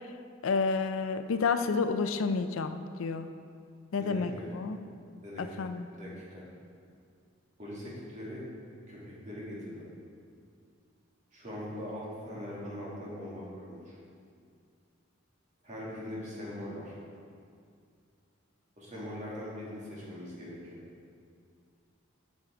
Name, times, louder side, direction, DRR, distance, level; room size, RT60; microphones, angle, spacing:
voice 1, 0.4-3.3 3.9-4.8 5.4-5.9, left 4 dB, 75° left, 9 dB, 0.4 m, -30 dB
voice 2, 5.2-5.6 5.9-6.4 7.6-8.4 8.9-9.0 9.2-9.8 11.3-14.0 15.6-16.9 18.8-20.8, left 1 dB, 35° right, -7 dB, 2.3 m, -41 dB
8.7 x 6.2 x 4.4 m, 2.3 s
head